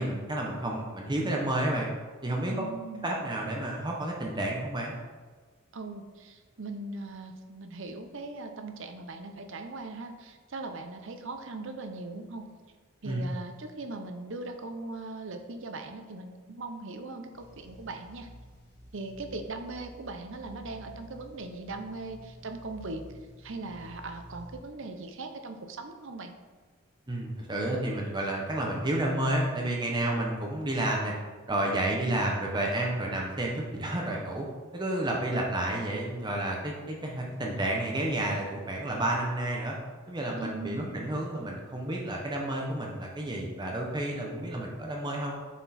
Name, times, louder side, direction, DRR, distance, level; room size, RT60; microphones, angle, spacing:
voice 1, 0.0-1.9 2.2-2.6 3.0-4.9 13.0-13.2 27.1-31.1 31.5-34.5 34.7-39.7 40.1-45.4, right 1 dB, 20° right, -1 dB, 0.8 m, -30 dB
voice 2, 2.5-3.1 5.7-12.5 13.0-18.3 18.9-23.0 23.4-26.3 32.0-32.2 40.4-40.9, right 2 dB, 55° right, 6 dB, 0.6 m, -40 dB
sound 1, 17.3-24.6, equal, 10° left, 1.4 m, -50 dB
7.2 x 4.5 x 4.2 m, 1.4 s
head